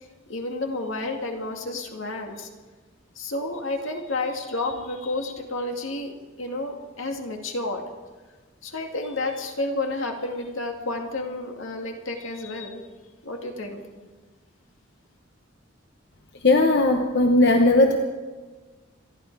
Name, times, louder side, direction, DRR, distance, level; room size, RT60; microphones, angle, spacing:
voice 1, 0.3-2.5 3.2-6.1 6.4-7.8 8.6-12.8 13.2-14.1, left 2 dB, 75° left, 3 dB, 2.1 m, -31 dB
voice 2, 16.4-18.0, left 2 dB, 55° left, 4 dB, 1.0 m, -18 dB
26.5 x 11.5 x 4.7 m, 1.3 s
head